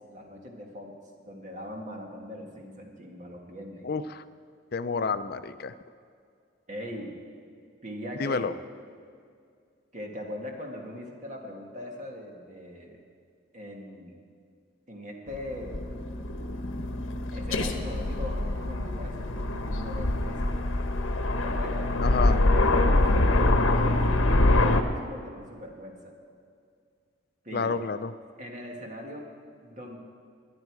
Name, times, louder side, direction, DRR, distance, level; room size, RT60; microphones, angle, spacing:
voice 1, 0.1-0.9 1.2-3.9 6.7-7.1 7.8-8.5 9.9-13.0 13.5-14.2 14.9-15.8 17.3-20.7 21.4-26.1 27.4-27.7 28.4-29.3 29.6-30.0, left 1 dB, 35° right, 1 dB, 1.9 m, -40 dB
voice 2, 3.8-4.2 4.7-5.7 8.2-8.5 22.0-22.4 27.5-28.1, left 4 dB, 50° left, 12 dB, 0.5 m, -29 dB
Aircraft, 15.3-24.8, left 2 dB, 80° left, 1.0 m, -25 dB
21.0 x 10.5 x 4.8 m, 2.2 s
head